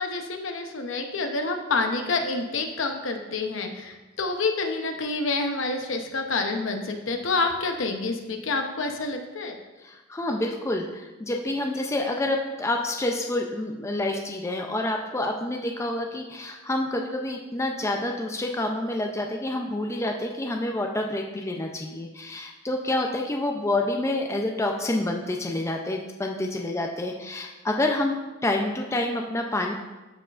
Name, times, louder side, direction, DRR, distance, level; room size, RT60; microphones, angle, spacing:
voice 1, 0.0-9.6, left 3 dB, 70° left, 5 dB, 0.7 m, -28 dB
voice 2, 9.8-28.2 28.4-29.7, left 1 dB, 15° left, 2 dB, 0.4 m, -28 dB
13.0 x 4.6 x 2.4 m, 1.1 s
head